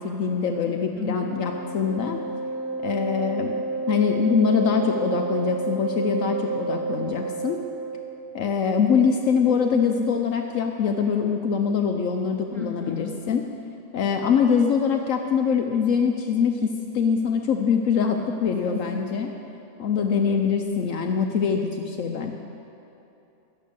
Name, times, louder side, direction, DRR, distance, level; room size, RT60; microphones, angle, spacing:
voice 1, 0.0-2.2 2.8-3.5 3.9-7.6 8.3-13.5 13.9-19.3 19.8-22.3, left 6 dB, 70° left, 3 dB, 1.1 m, -23 dB
voice 2, 1.0-1.4 12.5-13.1 18.7-18.8, left 4 dB, ahead, -5 dB, 3.5 m, -35 dB
Wind instrument woodwind instrument, 1.0-8.1, right 3 dB, 20° right, 1.4 m, -30 dB
13.5 x 9.6 x 6.8 m, 2.9 s
omnidirectional pair, 1.4 m